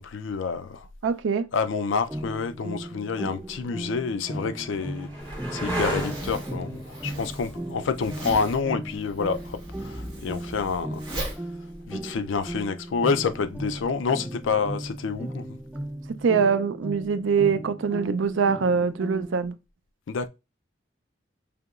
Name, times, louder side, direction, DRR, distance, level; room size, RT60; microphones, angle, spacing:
voice 1, 0.0-0.9 1.5-11.0 11.3-11.4 11.9-15.6 20.1-20.3, left 5 dB, 85° left, 0.4 m, -28 dB
voice 2, 1.0-1.5 16.2-19.5, right 5 dB, 80° right, 0.4 m, -23 dB
sound 1, 2.1-19.5, right 1 dB, 5° right, 0.4 m, -37 dB
sound 2, 2.5-2.6 3.4-11.0 13.4-13.9, right 1 dB, 10° left, 1.8 m, -37 dB
Zipper (clothing), 5.2-12.6, right 1 dB, 25° right, 1.3 m, -38 dB
5.0 x 2.8 x 2.3 m
head